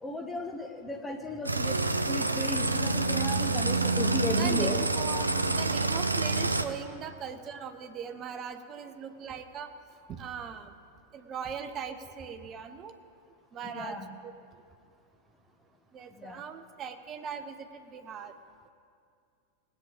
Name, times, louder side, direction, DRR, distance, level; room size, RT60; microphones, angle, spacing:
voice 1, 0.0-4.9 13.6-14.1 16.2-16.4, left 1 dB, 10° left, 4 dB, 1.3 m, -35 dB
sound 1, 1.5-6.6, right 3 dB, 80° right, 0.6 m, -27 dB
voice 2, 4.3-4.7 5.0-9.7 10.1-10.7 11.1-12.9 13.5-14.0 15.9-18.3, right 7 dB, 30° right, 8 dB, 0.9 m, -39 dB
19.0 x 8.5 x 5.2 m, 2.3 s
figure-of-eight pair, 90°, 0 cm